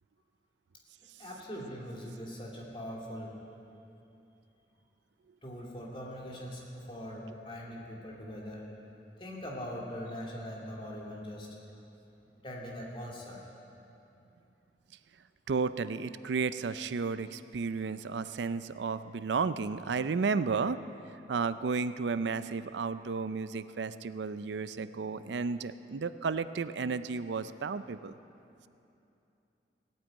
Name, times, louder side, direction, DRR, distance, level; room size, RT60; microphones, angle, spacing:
voice 1, 1.2-3.3 5.4-8.6 9.2-11.5 12.4-13.4, equal, 30° left, -3 dB, 2.6 m, -41 dB
voice 2, 15.5-20.8 21.3-28.2, right 4 dB, 85° right, 13 dB, 0.5 m, -33 dB
17.0 x 8.9 x 9.0 m, 2.8 s
head